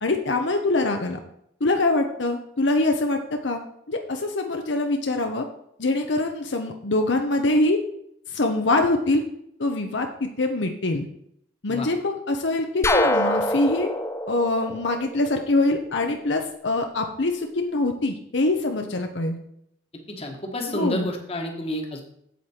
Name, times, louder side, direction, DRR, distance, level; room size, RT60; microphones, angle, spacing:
voice 1, 0.0-1.2 1.6-3.2 3.4-3.6 3.9-5.4 5.8-7.8 8.3-9.2 9.6-11.1 11.6-13.9 14.3-19.4 20.7-21.1, left 2 dB, 70° left, 4 dB, 0.9 m, -24 dB
sound 1, 12.8-15.6, left 1 dB, 15° left, 0.5 m, -24 dB
voice 2, 20.1-22.0, left 1 dB, 30° left, 2 dB, 1.4 m, -30 dB
8.3 x 8.0 x 4.4 m, 0.73 s
head